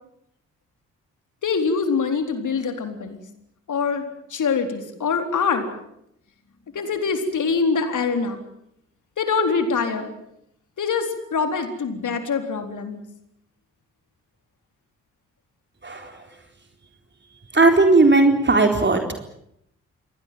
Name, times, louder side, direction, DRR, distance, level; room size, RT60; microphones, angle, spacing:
voice 1, 1.4-3.2 3.7-4.0 4.3-5.7 6.7-8.4 9.2-10.1 10.8-13.0, left 5 dB, 55° left, 6 dB, 4.0 m, -24 dB
voice 2, 15.8-16.2 17.5-19.0, right 3 dB, 30° right, 4 dB, 4.2 m, -16 dB
27.5 x 20.5 x 7.6 m, 0.77 s
hypercardioid pair, 40°, 35 cm